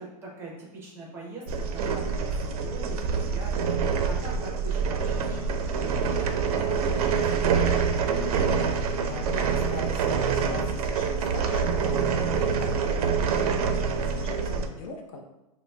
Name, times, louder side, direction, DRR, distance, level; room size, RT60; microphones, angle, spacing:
voice 1, 0.0-7.7, right 2 dB, 10° right, -3 dB, 0.6 m, -43 dB
sound 1, 1.5-14.7, right 5 dB, 75° right, 0.4 m, -26 dB
voice 2, 9.0-13.3 13.8-15.2, left 3 dB, 60° left, 2 dB, 0.5 m, -40 dB
4.9 x 2.0 x 2.2 m, 0.94 s
supercardioid pair, 165°, 20 cm